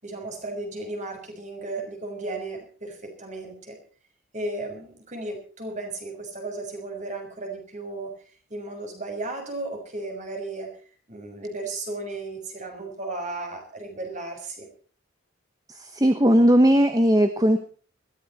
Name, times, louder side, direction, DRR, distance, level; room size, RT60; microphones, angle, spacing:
voice 1, 0.0-3.8 4.3-8.1 8.5-10.8 11.1-14.7, right 2 dB, 40° right, 4 dB, 6.2 m, -35 dB
voice 2, 15.7-17.6, equal, 20° right, 9 dB, 1.2 m, -18 dB
21.0 x 15.5 x 4.3 m, 0.42 s
head